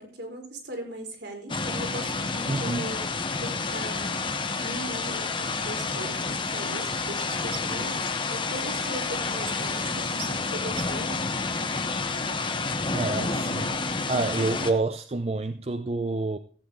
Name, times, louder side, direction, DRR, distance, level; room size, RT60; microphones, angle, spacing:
voice 1, 0.0-11.2, right 1 dB, 65° right, 3.8 m, -39 dB
sound 1, 1.5-14.7, left 4 dB, 25° left, 1.0 m, -29 dB
voice 2, 2.5-2.9 12.9-13.8 14.1-16.4, right 3 dB, 30° right, 0.5 m, -28 dB
15.0 x 8.2 x 3.8 m
head